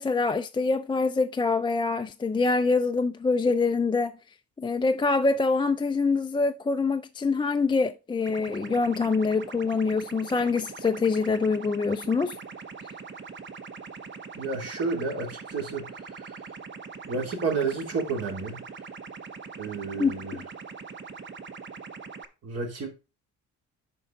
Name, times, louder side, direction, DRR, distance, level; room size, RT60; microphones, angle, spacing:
voice 1, 0.0-4.2 4.6-12.4 20.0-20.4, left 4 dB, 15° left, 0.4 m, -25 dB
sound 1, 8.2-22.2, right 5 dB, 40° right, 1.0 m, -42 dB
voice 2, 14.4-16.3 17.1-18.6 19.6-20.4 22.4-22.9, right 4 dB, 55° right, 3.0 m, -31 dB
9.2 x 5.4 x 3.8 m
cardioid pair, 90°, 30 cm